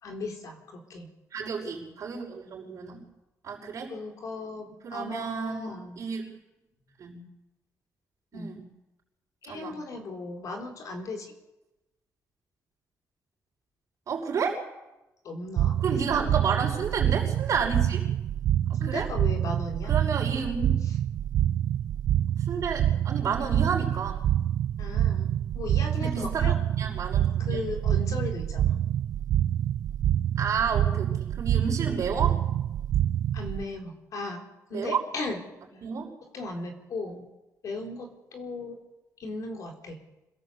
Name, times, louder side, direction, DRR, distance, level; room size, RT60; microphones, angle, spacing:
voice 1, 0.0-1.1 3.9-6.0 8.3-8.5 9.4-11.3 15.2-16.4 18.8-20.0 24.8-26.5 27.4-28.8 31.8-32.1 33.3-34.4 34.7-35.4 36.3-37.2 37.6-38.8 39.2-40.0, left 3 dB, 60° left, 3 dB, 4.1 m, -37 dB
voice 2, 1.3-3.0 3.4-3.9 4.8-6.2 7.0-7.2 8.3-8.6 9.5-9.8 14.1-14.6 15.8-18.0 18.7-19.1 19.9-20.7 22.3-24.2 26.0-27.6 30.4-32.4 34.7-35.0 35.8-36.1 37.0-37.2, right 6 dB, 55° right, -3 dB, 5.9 m, -31 dB
sound 1, 15.6-33.6, right 11 dB, 75° right, 0.7 m, -27 dB
25.5 x 17.5 x 8.1 m, 0.99 s
cardioid pair, 145°, 6 cm